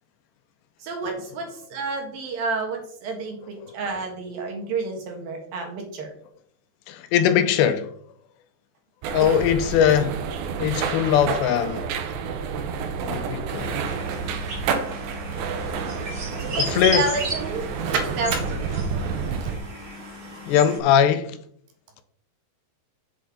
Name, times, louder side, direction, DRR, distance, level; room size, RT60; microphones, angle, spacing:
voice 1, 0.8-6.1 16.4-18.8, right 4 dB, 60° right, 3.2 m, -30 dB
voice 2, 6.9-7.9 9.1-10.2 10.6-11.9 13.0-13.9 16.6-17.1 20.5-21.4, left 9 dB, 85° left, 2.8 m, -21 dB
sound 1, 9.0-19.6, right 6 dB, 90° right, 3.3 m, -29 dB
sound 2, 13.5-20.8, equal, 30° right, 3.5 m, -34 dB
8.0 x 7.8 x 5.0 m
omnidirectional pair, 5.0 m